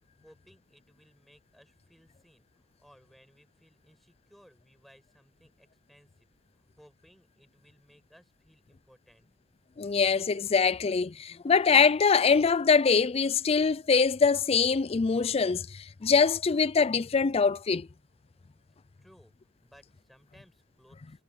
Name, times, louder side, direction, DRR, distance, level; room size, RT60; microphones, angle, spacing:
voice 1, 0.2-2.4 2.8-6.1 6.5-9.3 19.0-19.3 19.6-21.2, equal, ahead, 6.9 m, -60 dB
voice 2, 9.8-17.9, left 5 dB, 30° left, 0.4 m, -24 dB
head